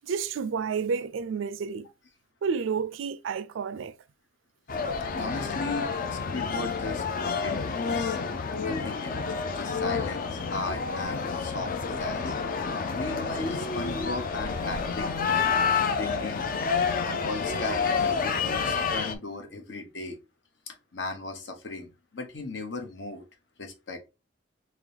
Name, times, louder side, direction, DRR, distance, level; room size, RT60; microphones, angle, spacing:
voice 1, 0.0-1.9 2.4-4.0, right 6 dB, 85° right, 0.4 m, -30 dB
sound 1, 4.7-19.2, left 5 dB, 45° left, 0.5 m, -29 dB
voice 2, 5.2-8.2 8.6-12.3 12.9-15.5 16.0-16.5 17.0-20.2 20.7-23.2 23.6-24.0, left 2 dB, 65° left, 1.0 m, -37 dB
3.8 x 2.9 x 3.3 m
head